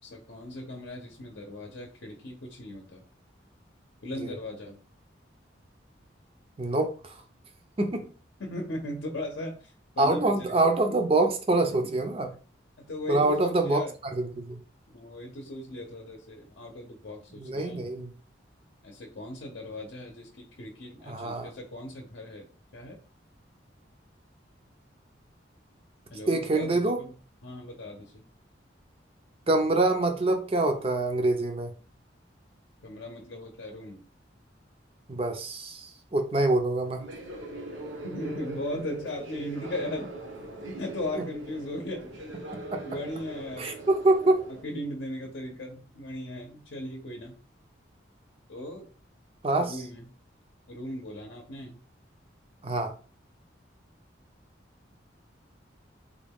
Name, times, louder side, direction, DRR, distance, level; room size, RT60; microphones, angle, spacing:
voice 1, 0.0-3.0 4.0-4.8 8.4-10.6 10.9-11.0 11.3-11.8 12.8-13.9 14.9-17.9 18.8-22.5 22.7-23.0 26.1-27.1 27.4-28.2 32.8-34.1 38.0-40.1 40.6-42.1 42.8-43.7 44.6-47.3 48.5-48.9 49.7-50.1 50.7-51.8, left 1 dB, 70° left, 0 dB, 0.7 m, -38 dB
voice 2, 6.6-7.2 7.8-8.1 10.0-12.3 13.1-13.8 14.1-14.6 17.4-18.1 21.1-21.5 26.3-27.0 29.5-31.7 35.1-37.0 42.5-42.8 43.6-44.5 49.4-49.8 52.6-52.9, right 2 dB, 30° right, 6 dB, 0.5 m, -25 dB
sound 1, 36.8-44.6, right 1 dB, 80° right, 0.8 m, -41 dB
3.6 x 2.3 x 3.5 m, 0.38 s
head